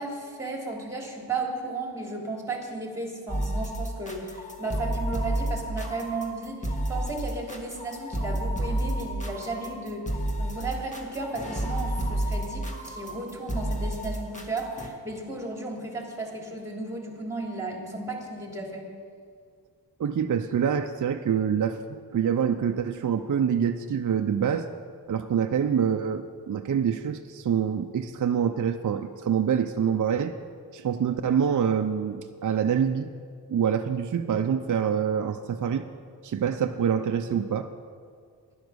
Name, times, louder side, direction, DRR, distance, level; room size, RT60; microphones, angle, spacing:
voice 1, 0.0-10.0 10.4-18.9, right 2 dB, 5° right, 0 dB, 3.0 m, -34 dB
sound 1, 3.3-14.9, right 1 dB, 20° left, 1.8 m, -31 dB
voice 2, 20.0-21.8 22.1-24.7 25.1-30.3 30.7-33.1 33.5-35.8 36.2-37.7, right 8 dB, 50° right, 6 dB, 0.6 m, -26 dB
10.5 x 10.5 x 6.3 m, 2.1 s
cardioid pair, 60°, 41 cm